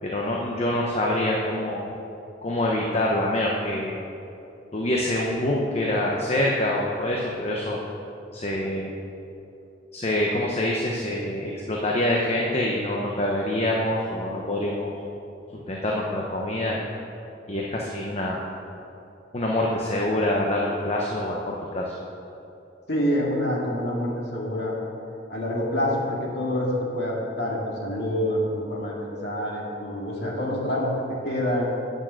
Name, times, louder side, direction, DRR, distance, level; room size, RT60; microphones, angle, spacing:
voice 1, 0.0-1.9 2.4-3.9 4.7-7.8 8.3-8.9 9.9-14.9 15.5-16.8 17.5-18.4 19.3-21.9, left 1 dB, 35° left, -2 dB, 0.9 m, -25 dB
voice 2, 22.9-24.7 25.3-30.9 31.2-31.6, equal, 65° left, -4 dB, 2.3 m, -27 dB
8.9 x 6.5 x 7.6 m, 2.7 s
head